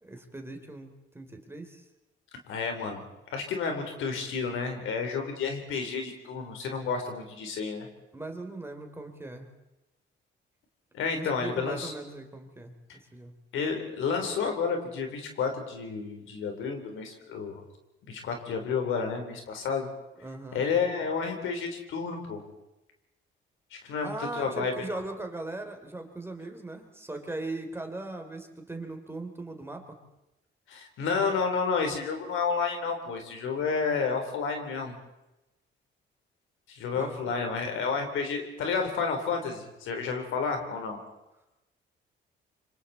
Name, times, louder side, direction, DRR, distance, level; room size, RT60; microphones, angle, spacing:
voice 1, 0.0-1.8 8.1-9.5 11.1-13.3 20.1-20.6 24.0-30.0 36.9-37.2, right 2 dB, 10° right, 5 dB, 3.5 m, -39 dB
voice 2, 2.5-3.1 3.3-7.9 10.9-11.9 13.5-17.6 18.1-19.9 20.5-22.4 23.7-24.7 30.7-35.0 36.7-41.0, left 5 dB, 80° left, 4 dB, 4.0 m, -30 dB
27.0 x 25.0 x 4.3 m, 0.94 s
cardioid pair, 90°, 20 cm